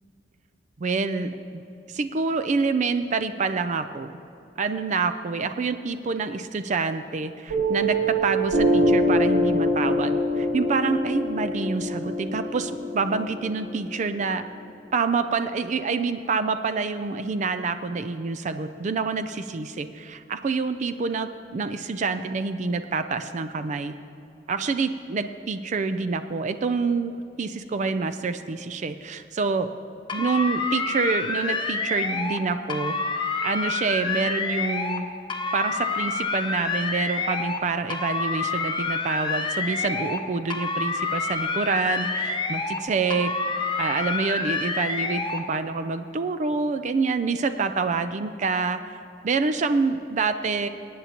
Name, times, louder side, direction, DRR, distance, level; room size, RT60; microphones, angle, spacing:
voice 1, 0.8-1.6 1.9-4.1 4.6-14.4 14.9-24.0 24.5-27.1 27.4-29.7 30.1-33.0 33.4-35.1 35.5-43.3 43.8-50.7, right 4 dB, 40° right, 10 dB, 0.4 m, -27 dB
Piano, 7.5-14.6, equal, 55° right, 2.7 m, -24 dB
sound 1, 30.1-32.4 32.7-35.0 35.3-37.6 37.9-40.2 40.5-42.8 43.1-45.4, left 3 dB, 25° left, 0.7 m, -28 dB
23.0 x 9.3 x 2.9 m, 2.7 s
head